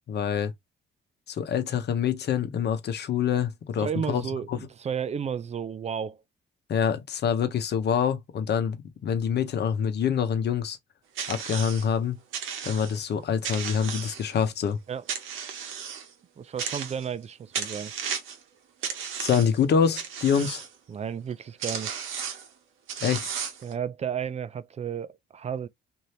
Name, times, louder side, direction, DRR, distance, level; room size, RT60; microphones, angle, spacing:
voice 1, 0.1-0.5 1.3-4.2 4.5-4.6 6.7-8.8 9.0-10.8 11.3-12.2 12.6-14.8 19.2-20.6 23.0-23.3, left 7 dB, 55° left, 0.8 m, -26 dB
voice 2, 3.8-6.2 14.9-15.0 16.4-17.9 20.9-22.0 23.6-25.7, right 7 dB, 35° right, 0.4 m, -33 dB
sound 1, 11.2-11.9 12.3-13.0 13.4-14.5 15.1-16.1 16.6-17.2 17.5-18.4 18.8-19.6 20.0-20.7 21.3-21.4 21.6-22.5 22.9-23.7, right 7 dB, 85° right, 0.8 m, -34 dB
2.8 x 2.6 x 3.1 m
cardioid pair, 90°, 20 cm